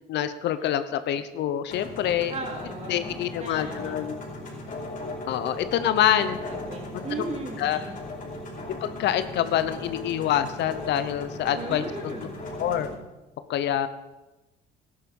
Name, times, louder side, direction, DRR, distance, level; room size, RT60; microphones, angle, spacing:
voice 1, 0.1-2.3 2.9-4.2 5.3-6.4 7.6-7.8 8.8-12.1 12.6-12.9 13.5-13.9, left 11 dB, 70° left, 12 dB, 0.8 m, -26 dB
sound 1, 1.7-12.9, left 1 dB, 45° left, 4.6 m, -38 dB
voice 2, 2.3-4.0 6.2-8.1 11.5-12.4, right 2 dB, 35° right, 1 dB, 3.5 m, -37 dB
13.5 x 10.5 x 5.4 m, 1.1 s
supercardioid pair, 90°, 19 cm